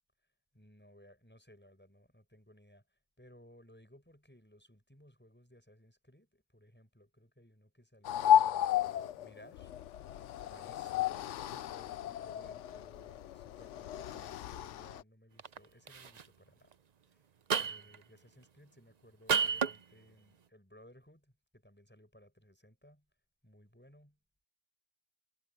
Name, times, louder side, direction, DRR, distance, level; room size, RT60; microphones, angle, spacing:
voice 1, 0.5-9.7 10.5-16.8 17.1-17.2 17.6-23.1 23.4-24.2, equal, 5° left, 6.3 m, -60 dB
sound 1, 8.0-15.0, left 11 dB, 65° left, 0.8 m, -33 dB
sound 2, 15.4-15.6 15.9-16.2 17.5-18.0 19.3-19.8, right 6 dB, 65° right, 0.4 m, -30 dB
omnidirectional pair, 1.6 m